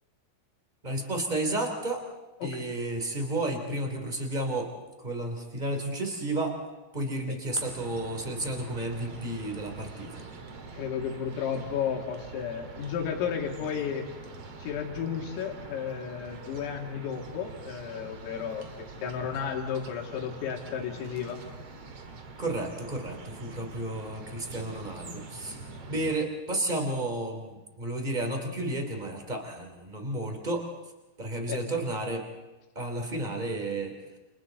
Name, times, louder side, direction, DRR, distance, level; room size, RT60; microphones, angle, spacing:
voice 1, 0.8-2.0 2.4-4.7 5.0-6.6 6.9-10.2 22.4-25.6 25.9-30.7 31.2-32.2 32.7-34.2, right 2 dB, 10° right, 3 dB, 2.2 m, -32 dB
sound 1, 7.5-26.2, right 3 dB, 50° right, 2.0 m, -45 dB
voice 2, 10.7-14.1 14.6-21.4 31.5-31.7, left 7 dB, 80° left, 1 dB, 5.4 m, -33 dB
30.0 x 29.0 x 4.1 m, 1.1 s
omnidirectional pair, 6.0 m